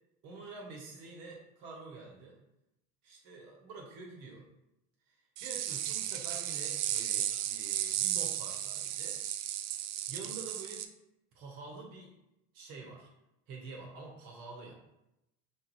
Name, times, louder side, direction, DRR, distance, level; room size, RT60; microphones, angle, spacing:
voice 1, 0.2-2.4 3.0-4.5 5.1-9.2 10.1-10.9 11.3-12.1 12.5-13.1 13.5-14.7, right 3 dB, 60° right, 0 dB, 1.5 m, -47 dB
sound 1, 5.4-10.9, right 11 dB, 80° right, 0.5 m, -34 dB
5.1 x 2.6 x 3.1 m, 0.87 s
hypercardioid pair, 75°, 46 cm